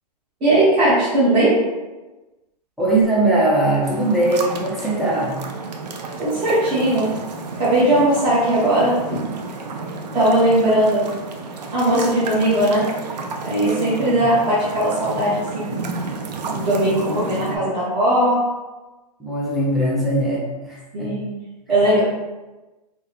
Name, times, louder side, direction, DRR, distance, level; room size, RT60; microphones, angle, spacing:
voice 1, 0.4-1.5 6.2-7.1 7.6-8.9 10.1-11.1 11.7-12.8 13.4-15.7 16.5-18.5 20.9-21.3 21.7-22.0, right 1 dB, 25° right, -12 dB, 1.0 m, -18 dB
voice 2, 2.8-5.4 13.8-14.3 17.1-17.2 17.4-17.6 19.2-21.2, right 1 dB, ahead, -6 dB, 0.5 m, -21 dB
sound 1, 3.8-17.6, right 3 dB, 75° right, 0.5 m, -31 dB
3.6 x 2.1 x 2.8 m, 1.1 s
hypercardioid pair, 150°, 21 cm